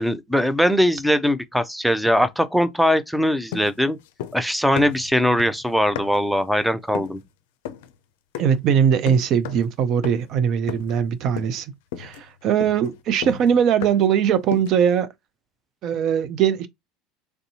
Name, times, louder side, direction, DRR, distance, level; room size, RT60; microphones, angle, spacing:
voice 1, 0.0-4.0 4.3-7.2, equal, ahead, 0.5 m, -21 dB
sound 1, 3.5-4.5 4.8-6.3 6.9-7.2 7.7-7.9 8.3-8.7 9.1-9.7 10.0-10.4 10.7-11.1 11.4-11.6 11.9-14.2 14.5-14.9, left 9 dB, 80° left, 0.4 m, -35 dB
voice 2, 8.4-11.7 12.0-15.1 15.8-16.7, right 8 dB, 55° right, 0.4 m, -20 dB
3.3 x 2.6 x 2.7 m
supercardioid pair, 90°, 0 cm